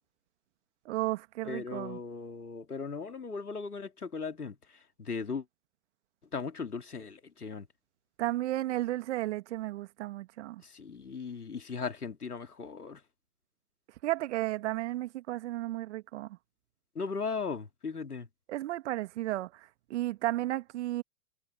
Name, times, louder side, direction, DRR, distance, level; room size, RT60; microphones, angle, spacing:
voice 1, 0.9-2.0 8.2-10.6 14.0-16.4 18.5-21.0, right 16 dB, 50° right, 1.9 m, -33 dB
voice 2, 1.4-5.4 6.3-7.7 10.6-13.0 16.9-18.3, left 5 dB, 90° left, 2.8 m, -38 dB
figure-of-eight pair, 115°, 44 cm